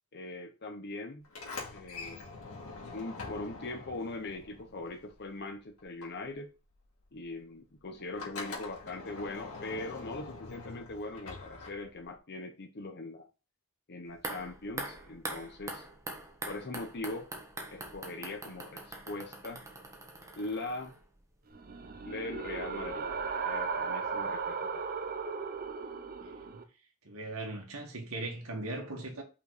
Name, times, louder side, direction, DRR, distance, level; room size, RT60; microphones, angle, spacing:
voice 1, 0.1-1.2 1.7-2.3 2.9-6.5 7.1-13.3 13.9-15.9 16.5-17.3 17.7-19.6 20.4-20.9 22.1-23.1 23.4-24.8, left 2 dB, 50° left, 1.0 m, -41 dB
Sliding door, 1.2-5.5 5.8-12.2, left 3 dB, 75° left, 2.4 m, -45 dB
sound 1, 14.1-21.2 21.5-21.6, right 2 dB, 15° right, 1.3 m, -43 dB
sound 2, 21.5-26.6, right 5 dB, 40° right, 0.8 m, -36 dB
voice 2, 26.2-26.6 27.0-29.2, right 2 dB, 75° right, 2.1 m, -39 dB
5.6 x 4.6 x 5.0 m
head